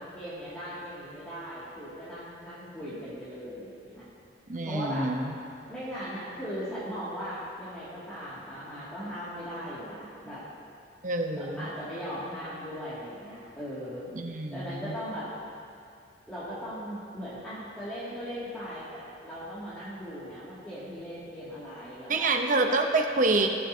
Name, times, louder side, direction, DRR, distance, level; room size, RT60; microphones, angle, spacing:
voice 1, 0.0-4.1 4.6-5.1 5.7-10.4 11.3-14.1 14.5-15.3 16.3-22.3, equal, 5° left, -13 dB, 2.3 m, -38 dB
voice 2, 4.5-5.3 11.0-11.7 14.1-14.9 22.1-23.5, right 2 dB, 40° right, 4 dB, 0.8 m, -27 dB
20.0 x 7.7 x 2.8 m, 2.4 s
head